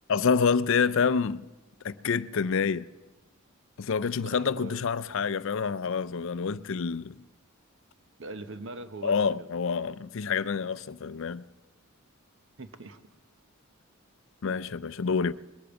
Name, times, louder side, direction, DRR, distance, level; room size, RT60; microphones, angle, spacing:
voice 1, 0.1-1.4 1.8-2.9 3.8-7.2 9.0-11.4 14.4-15.3, left 5 dB, 60° left, 0.4 m, -27 dB
voice 2, 4.2-4.9 8.2-9.5 12.6-13.0, right 2 dB, 60° right, 0.9 m, -41 dB
21.5 x 8.5 x 7.1 m
head